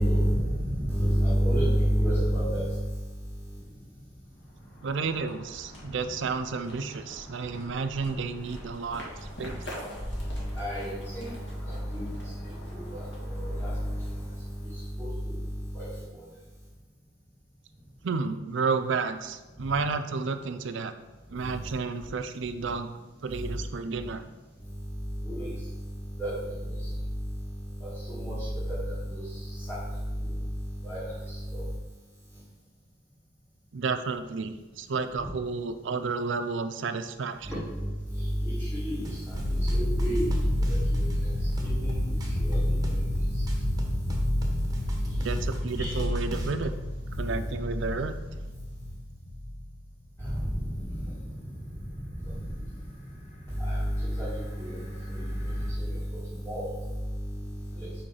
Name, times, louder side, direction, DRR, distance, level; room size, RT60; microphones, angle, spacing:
voice 1, 0.0-2.8 10.5-11.3 11.7-12.0 12.4-14.1 14.7-15.3 15.7-15.9 25.2-25.5 26.2-26.8 27.8-29.8 30.8-31.6 37.4-40.3 40.7-40.8 41.2-41.3 41.6-43.0 43.3-43.4 45.8-45.9 50.3-51.1 52.2-52.4 53.6-54.8 55.1-55.2 55.8-56.0 56.4-56.8 57.8-57.9, equal, 10° left, -11 dB, 1.9 m, -30 dB
sound 1, 4.3-15.0, equal, 55° left, 1.8 m, -44 dB
voice 2, 4.8-9.1 9.4-9.6 18.0-20.9 21.3-22.9 23.2-24.2 33.7-37.5 45.2-46.7 47.2-48.1, right 4 dB, 60° right, 9 dB, 0.5 m, -31 dB
sound 2, 39.0-46.6, right 1 dB, 20° right, 0.9 m, -43 dB
sound 3, 39.3-50.0 54.1-54.2 54.4-55.7, left 1 dB, 30° left, 1.2 m, -30 dB
5.3 x 4.4 x 5.6 m, 1.2 s
head